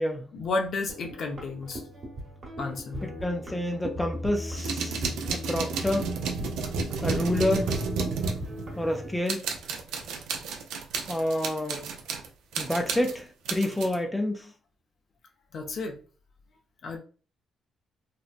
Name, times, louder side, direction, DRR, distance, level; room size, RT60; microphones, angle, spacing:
voice 1, 0.3-1.8 2.6-3.1 15.5-16.0 16.8-17.0, left 3 dB, 60° left, 0.6 m, -32 dB
sound 1, 0.9-9.2, equal, 45° right, 1.0 m, -37 dB
voice 2, 3.0-5.0 5.3-6.1 7.0-7.7 8.8-9.4 11.1-11.8 12.6-14.5, left 1 dB, 10° left, 0.5 m, -28 dB
sound 2, 4.6-9.0 9.3-12.3 12.5-14.0, right 5 dB, 90° right, 0.4 m, -32 dB
2.9 x 2.1 x 2.4 m
cardioid pair, 90°, 0 cm